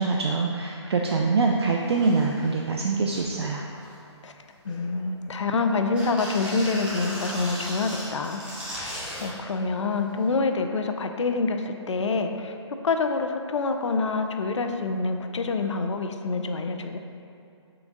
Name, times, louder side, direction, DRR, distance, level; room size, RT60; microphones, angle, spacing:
voice 1, 0.0-3.6, right 4 dB, 60° right, 0 dB, 0.4 m, -24 dB
sound 1, 1.5-1.6 1.8-2.5 2.9-3.3 3.7-4.2 4.7-5.5 5.9-9.3 10.4-10.5, equal, 5° right, 0.5 m, -37 dB
voice 2, 4.6-8.4 8.8-12.6 12.8-17.0, left 3 dB, 75° left, 6 dB, 0.4 m, -26 dB
3.8 x 3.4 x 3.8 m, 2.5 s
hypercardioid pair, 150°, 15 cm